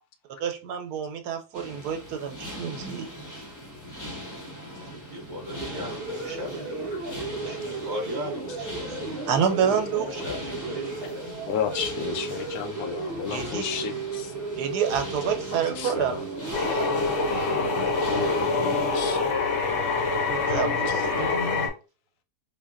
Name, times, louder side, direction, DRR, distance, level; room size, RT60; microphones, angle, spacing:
voice 1, 0.4-3.1 9.3-10.2 13.3-13.6 14.6-16.9 20.3-21.3, right 7 dB, 85° right, 1.2 m, -28 dB
sound 1, 1.5-19.0, equal, 15° left, 0.6 m, -40 dB
voice 2, 4.8-11.0, equal, 15° right, 0.9 m, -38 dB
sound 2, 5.5-19.2, right 3 dB, 50° right, 0.7 m, -35 dB
voice 3, 11.5-14.3 15.7-16.3 17.7-19.2 20.5-21.2, left 7 dB, 75° left, 1.2 m, -33 dB
sound 3, 16.5-21.7, left 4 dB, 55° left, 1.2 m, -25 dB
3.9 x 2.2 x 3.6 m
omnidirectional pair, 1.7 m